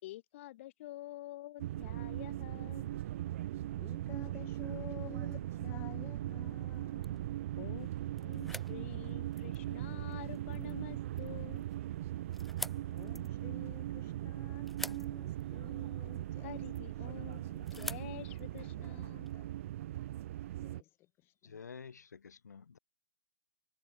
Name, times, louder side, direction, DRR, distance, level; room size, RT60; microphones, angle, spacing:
voice 1, 0.0-2.9 7.6-11.6 16.4-19.3, left 16 dB, 45° left, 4.6 m, -48 dB
sound 1, 1.6-20.8, right 13 dB, 50° right, 1.5 m, -39 dB
voice 2, 3.8-7.3 12.7-16.6 17.1-17.7 18.6-19.5 20.6-21.6, left 16 dB, 25° left, 4.6 m, -53 dB
sound 2, 6.4-19.3, left 1 dB, ahead, 1.2 m, -50 dB
voice 3, 21.4-22.8, left 6 dB, 90° left, 2.5 m, -50 dB
hypercardioid pair, 140°, 9 cm